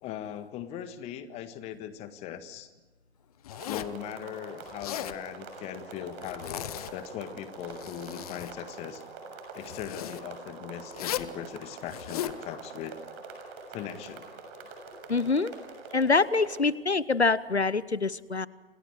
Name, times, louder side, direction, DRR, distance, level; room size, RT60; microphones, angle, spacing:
voice 1, 0.0-2.7 3.6-9.0 9.5-13.0 13.7-14.3 15.4-15.5 15.9-16.0, left 10 dB, 20° left, 11 dB, 1.5 m, -40 dB
Zipper (clothing), 3.4-4.0 4.7-5.2 6.2-7.0 7.6-8.6 9.6-10.2 10.9-11.3 11.9-12.4, left 12 dB, 35° left, 1.0 m, -37 dB
sound 1, 3.5-16.6, right 3 dB, 30° right, 6.8 m, -45 dB
voice 2, 15.1-15.5 15.9-18.5, left 4 dB, 90° left, 20 dB, 0.9 m, -25 dB
28.5 x 27.5 x 4.8 m, 1.2 s
figure-of-eight pair, 125°, 32 cm